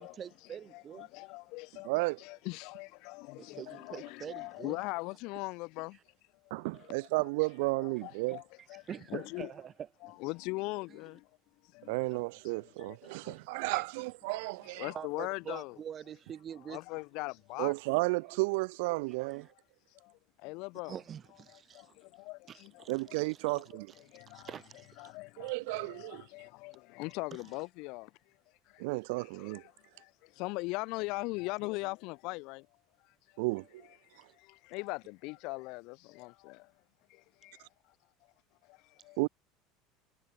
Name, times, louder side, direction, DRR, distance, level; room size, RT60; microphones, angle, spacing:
voice 1, 0.0-1.1 3.4-4.8 6.7-6.9 8.6-9.9 13.0-13.1 13.7-13.8 14.9-16.8 19.3-19.5 20.9-21.9 22.5-23.6 23.9-25.2, right 8 dB, 30° right, 2.2 m, -45 dB
voice 2, 0.7-6.0 6.4-7.3 7.7-9.5 10.0-11.3 11.6-13.8 14.3-15.8 16.6-17.7 19.9-21.0 21.5-23.2 23.5-24.5 25.0-28.1 28.7-28.9 29.1-32.7 33.0-33.4 33.8-36.6 39.0-39.2, left 26 dB, 65° left, 2.0 m, -41 dB
voice 3, 1.8-2.2 6.5-8.4 11.9-14.9 17.6-19.5 22.9-23.9 25.4-26.2 28.8-29.6 33.4-33.6 39.2-39.3, right 27 dB, 80° right, 1.2 m, -33 dB
supercardioid pair, 135°, 0 cm